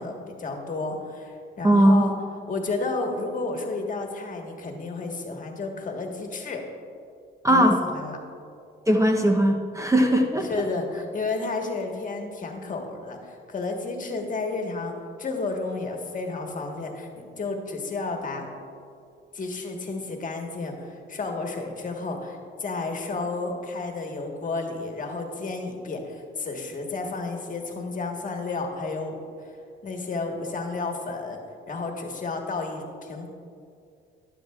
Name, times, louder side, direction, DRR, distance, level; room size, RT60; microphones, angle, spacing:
voice 1, 0.0-2.1 2.5-6.6 7.5-8.2 10.5-14.9 15.2-18.5 19.3-29.2 29.8-31.4 31.7-32.8 33.1-33.3, left 3 dB, 40° left, 2 dB, 1.4 m, -32 dB
voice 2, 1.6-2.1 7.4-7.8 8.9-10.5, right 1 dB, 15° right, 2 dB, 0.8 m, -19 dB
12.0 x 11.0 x 2.4 m, 2.5 s
cardioid pair, 90°, 20 cm